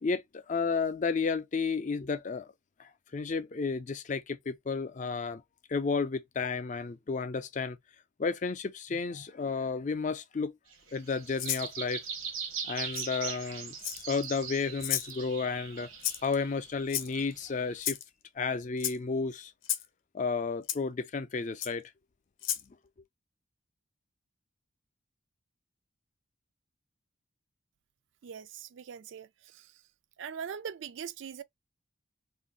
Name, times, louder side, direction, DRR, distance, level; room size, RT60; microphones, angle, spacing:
voice 1, 0.0-2.5 2.8-5.4 5.7-7.8 8.2-10.5 10.9-12.0 12.6-13.7 14.1-15.9 16.2-18.0 18.4-19.5 20.1-21.9, left 4 dB, 35° left, 0.4 m, -32 dB
sound 1, 10.7-17.8, right 6 dB, 85° right, 0.9 m, -41 dB
Rattle (instrument), 11.4-11.7 12.9-13.1 13.8-14.2 14.8-15.1 16.0-16.3 16.9-17.3 17.8-18.0 18.8-19.0 19.6-19.9 20.7-20.8 21.6-21.7 22.4-22.6, left 11 dB, 75° left, 0.6 m, -32 dB
voice 2, 28.2-29.3 29.5-29.7 30.2-31.4, right 7 dB, 65° right, 0.3 m, -41 dB
2.6 x 2.5 x 3.7 m
head